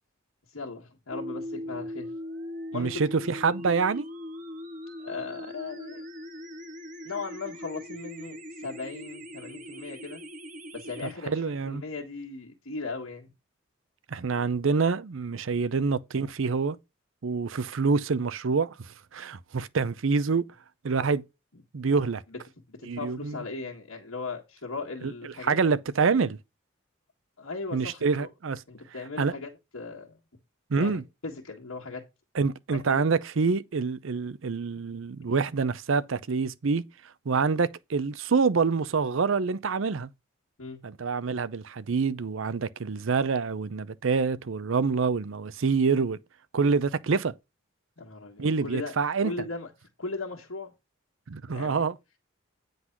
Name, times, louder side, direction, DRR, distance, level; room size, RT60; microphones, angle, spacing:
voice 1, 0.5-2.1 2.7-3.0 5.0-6.0 7.0-10.2 10.7-13.3 21.5-21.6 22.3-25.6 27.4-28.3 28.7-30.2 30.8-32.0 32.7-33.1 35.3-35.4 40.6-40.8 48.0-48.9 49.2-49.7 50.0-50.7 51.5-51.9, left 3 dB, 85° left, 1.7 m, -38 dB
sound 1, 1.1-11.1, left 1 dB, 40° right, 1.4 m, -40 dB
voice 2, 2.7-4.0 11.3-11.8 14.1-16.8 17.2-20.4 20.8-21.2 21.7-22.2 22.9-23.4 25.0-25.1 25.4-26.4 27.7-28.6 29.2-29.3 30.7-31.0 32.3-36.8 37.3-40.1 40.8-46.2 46.5-47.3 48.4-49.3 51.3-52.0, right 4 dB, 75° right, 0.6 m, -26 dB
9.6 x 4.0 x 5.9 m
head